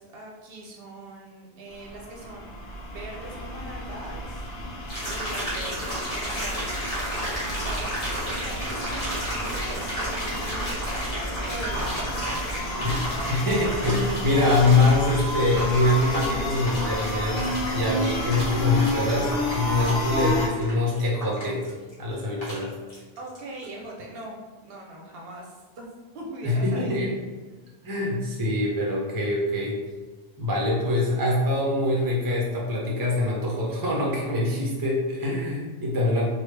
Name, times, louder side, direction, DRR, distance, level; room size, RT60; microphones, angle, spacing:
voice 1, 0.0-2.6 2.9-4.5 5.1-12.2 23.2-24.4 24.6-25.9 26.1-27.0, right 1 dB, 65° right, -1 dB, 0.8 m, -41 dB
sound 1, 1.8-20.5, left 1 dB, 70° left, 0.8 m, -31 dB
sound 2, 4.9-23.4 23.6-23.7, equal, 35° left, 1.2 m, -33 dB
voice 2, 13.3-21.6 22.0-22.7 26.4-27.1 27.8-29.8 30.4-36.3, left 2 dB, 25° right, -3 dB, 0.5 m, -24 dB
3.2 x 2.3 x 3.2 m, 1.3 s
omnidirectional pair, 1.1 m